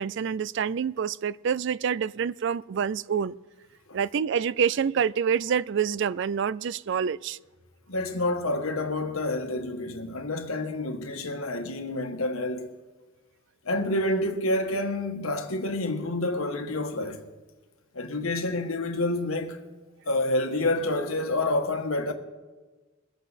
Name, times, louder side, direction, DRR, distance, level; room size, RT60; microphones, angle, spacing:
voice 1, 0.0-3.3 3.9-7.4, right 7 dB, 60° right, 0.3 m, -27 dB
voice 2, 7.9-12.7 13.6-17.2 17.9-19.6 20.1-22.1, left 2 dB, 90° left, 1.5 m, -28 dB
22.5 x 8.3 x 4.1 m
head